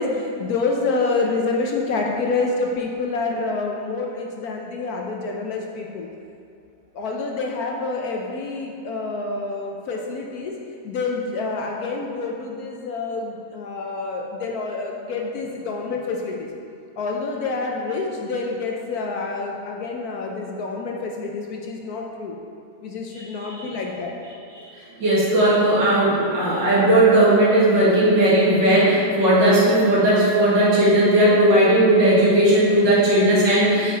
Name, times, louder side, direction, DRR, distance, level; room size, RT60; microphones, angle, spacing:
voice 1, 0.0-6.1 6.9-10.5 10.8-16.5 17.0-22.3 22.8-24.1, left 3 dB, 65° left, 0 dB, 1.0 m, -27 dB
voice 2, 23.1-23.7 25.0-33.9, right 1 dB, 75° right, -7 dB, 2.4 m, -17 dB
9.1 x 4.7 x 4.0 m, 2.5 s
omnidirectional pair, 2.0 m